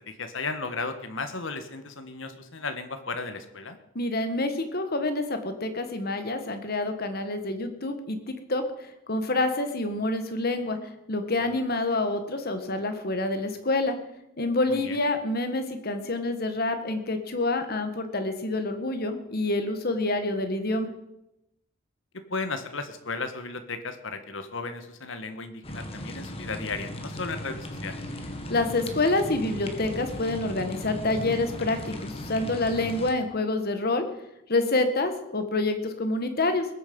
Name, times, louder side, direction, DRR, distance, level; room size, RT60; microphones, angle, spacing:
voice 1, 0.0-3.8 11.5-11.6 14.7-15.0 22.3-28.0, left 3 dB, 70° left, 8 dB, 1.5 m, -35 dB
voice 2, 3.9-8.6 9.1-10.8 11.1-13.9 14.4-20.9 28.5-34.0 34.5-36.7, left 2 dB, 50° left, 7 dB, 1.6 m, -27 dB
sound 1, 25.6-33.1, left 1 dB, 30° left, 1.7 m, -37 dB
20.5 x 8.7 x 5.5 m, 0.88 s
head